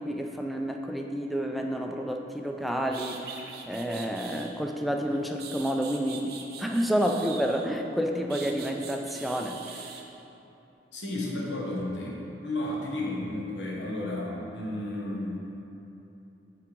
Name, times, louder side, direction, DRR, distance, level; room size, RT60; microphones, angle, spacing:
voice 1, 0.0-9.8, equal, ahead, 2 dB, 0.3 m, -30 dB
sound 1, 2.5-2.6 2.9-4.5 5.1-7.8 8.3-10.1, right 6 dB, 60° right, 0.6 m, -43 dB
voice 2, 10.9-15.5, left 1 dB, 85° left, -3 dB, 1.2 m, -33 dB
8.6 x 3.6 x 4.6 m, 2.9 s
head